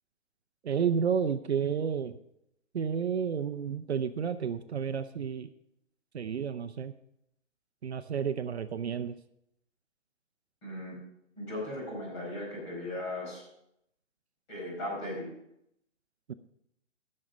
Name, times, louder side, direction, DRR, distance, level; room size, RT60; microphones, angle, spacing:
voice 1, 0.6-2.2 2.7-5.5 6.1-6.9 7.8-9.2 16.3-16.4, right 7 dB, 60° right, 10 dB, 0.6 m, -31 dB
voice 2, 10.6-11.0 11.4-13.4 14.5-15.3, left 1 dB, 25° left, -6 dB, 4.8 m, -37 dB
11.0 x 6.4 x 6.0 m, 0.78 s
hypercardioid pair, 175°, 37 cm